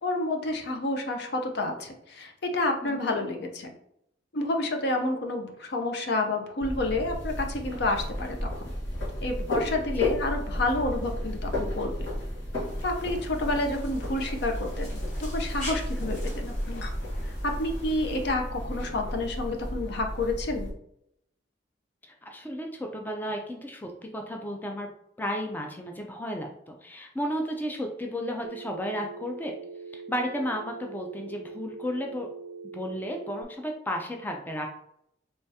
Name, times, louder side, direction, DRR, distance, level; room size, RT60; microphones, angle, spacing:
voice 1, 0.0-3.7 4.3-8.7 9.2-12.1 12.8-16.9 17.4-20.7, left 2 dB, 60° left, 4 dB, 0.6 m, -29 dB
sound 1, 6.6-20.7, equal, 85° left, 1.5 m, -33 dB
sound 2, 12.6-18.3, left 1 dB, 40° left, 1.4 m, -44 dB
voice 2, 22.0-24.9 25.2-29.5 29.9-32.3 32.6-34.7, equal, 10° left, 2 dB, 0.3 m, -33 dB
Telephone, 28.4-33.4, right 4 dB, 70° right, 0.3 m, -42 dB
3.4 x 3.1 x 2.7 m, 0.75 s
head